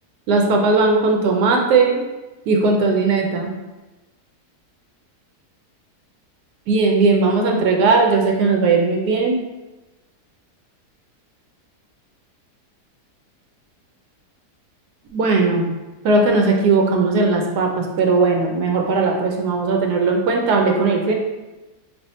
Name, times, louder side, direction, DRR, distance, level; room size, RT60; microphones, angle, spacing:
voice 1, 0.3-2.0 2.5-3.5 6.7-9.4 15.1-15.7 16.0-21.1, right 3 dB, 80° right, 1 dB, 1.2 m, -18 dB
3.4 x 2.4 x 4.1 m, 1.1 s
omnidirectional pair, 1.7 m